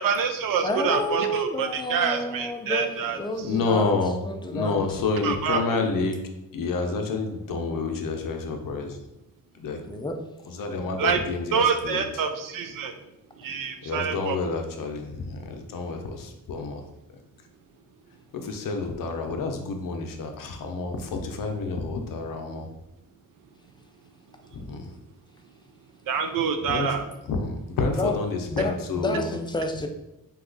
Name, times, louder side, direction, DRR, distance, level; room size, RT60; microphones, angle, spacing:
voice 1, 0.0-3.2 5.2-5.6 11.0-11.2 11.5-12.9 13.4-14.4 26.1-27.0, right 6 dB, 70° right, 7 dB, 0.5 m, -26 dB
voice 2, 0.6-3.9 4.2-4.8 9.8-10.2 28.0-28.1 28.5-29.9, left 1 dB, 15° left, 5 dB, 0.3 m, -29 dB
voice 3, 3.4-4.2 4.5-6.2 6.5-9.0 9.5-9.8 10.5-12.2 13.8-16.9 18.3-22.7 24.5-25.0 26.6-29.3, left 3 dB, 70° left, 4 dB, 0.6 m, -29 dB
2.8 x 2.3 x 3.8 m, 0.90 s
cardioid pair, 95°, 35 cm